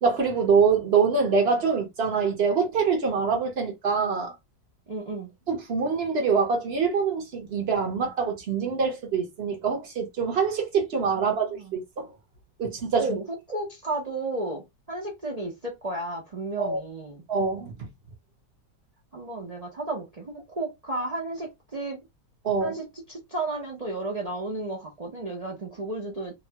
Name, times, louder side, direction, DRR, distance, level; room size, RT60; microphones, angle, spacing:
voice 1, 0.0-4.3 5.5-12.1 12.6-13.2 16.6-16.8 17.3-17.9 22.4-22.7, right 5 dB, 50° right, 0.8 m, -25 dB
voice 2, 4.9-5.3 11.1-11.8 13.0-17.2 19.1-22.0 22.6-26.4, right 2 dB, 75° right, 0.3 m, -33 dB
2.9 x 2.2 x 2.8 m
omnidirectional pair, 1.9 m